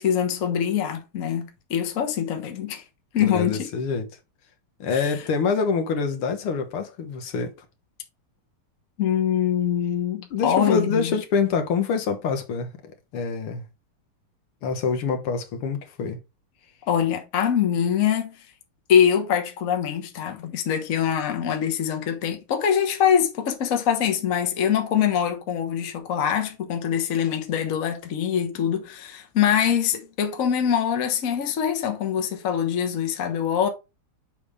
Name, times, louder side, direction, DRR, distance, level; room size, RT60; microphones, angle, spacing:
voice 1, 0.0-2.8 3.1-3.7 5.0-5.1 9.0-11.2 16.9-18.4 18.9-33.7, left 8 dB, 45° left, 1.3 m, -24 dB
voice 2, 3.2-4.1 4.8-7.5 10.3-12.7 13.1-13.6 14.6-16.2, left 5 dB, 75° left, 2.0 m, -25 dB
6.9 x 5.0 x 3.4 m
omnidirectional pair, 2.4 m